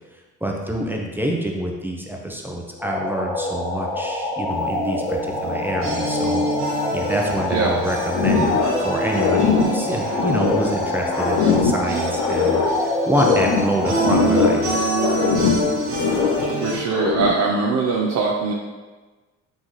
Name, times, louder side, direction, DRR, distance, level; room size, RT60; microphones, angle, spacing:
voice 1, 0.4-6.4 6.9-14.7, equal, 5° right, -1 dB, 0.6 m, -26 dB
sound 1, 2.8-14.2, left 1 dB, 10° left, 1.3 m, -26 dB
sound 2, 4.5-16.8, right 2 dB, 45° right, 1.1 m, -27 dB
sound 3, 8.1-8.9 9.1-10.8 11.1-12.8 13.1-14.7 15.0-16.5 16.9-17.5, left 5 dB, 85° left, 0.6 m, -21 dB
voice 2, 16.6-18.5, right 4 dB, 65° right, -2 dB, 0.6 m, -21 dB
3.9 x 3.8 x 3.1 m, 1.3 s
cardioid pair, 90°, 30 cm